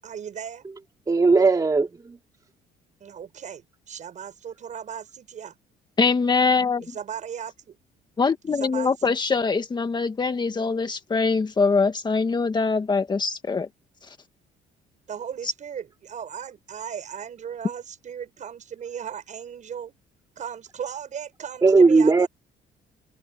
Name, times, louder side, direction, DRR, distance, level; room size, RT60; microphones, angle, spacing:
voice 1, 0.0-0.7 3.0-5.6 6.8-7.8 8.4-9.1 15.1-19.9 20.4-22.3, right 8 dB, 45° right, 7.1 m, -37 dB
voice 2, 1.1-2.2 21.6-22.3, right 4 dB, 20° right, 2.7 m, -17 dB
voice 3, 6.0-6.8 8.2-13.7, left 4 dB, 25° left, 1.9 m, -23 dB
cardioid pair, 110°, 17 cm